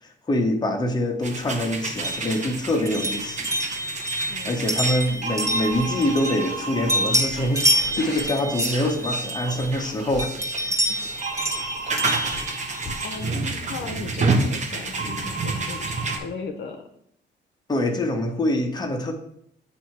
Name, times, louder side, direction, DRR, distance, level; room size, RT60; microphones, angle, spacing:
voice 1, 0.0-3.5 4.4-10.9 17.7-19.1, left 1 dB, 20° left, 2 dB, 1.1 m, -25 dB
sound 1, 1.2-16.2, right 3 dB, 35° right, 1.0 m, -30 dB
sound 2, 2.0-6.6 6.9-9.8 10.2-13.2, right 1 dB, 15° right, 1.2 m, -27 dB
voice 2, 4.3-4.6 8.0-8.4 10.7-11.2 13.0-16.9, left 5 dB, 65° left, 4 dB, 0.8 m, -37 dB
sound 3, 5.7-5.9 6.9-8.3 9.2-9.4 9.6-10.3 11.3-11.9 12.1-13.0 13.7-13.9, left 4 dB, 40° left, 1.4 m, -42 dB
8.0 x 2.8 x 4.5 m, 0.71 s
cardioid pair, 90°, 20 cm